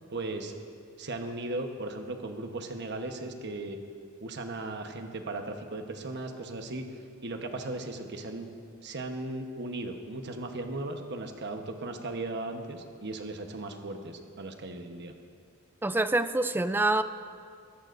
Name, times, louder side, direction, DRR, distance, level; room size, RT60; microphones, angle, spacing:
voice 1, 0.1-0.5 1.0-3.8 4.2-6.8 7.2-8.5 8.8-15.1, right 2 dB, 55° right, 5 dB, 1.1 m, -37 dB
voice 2, 15.8-17.0, right 2 dB, 10° right, 11 dB, 0.4 m, -26 dB
22.5 x 14.5 x 2.6 m, 2.3 s
head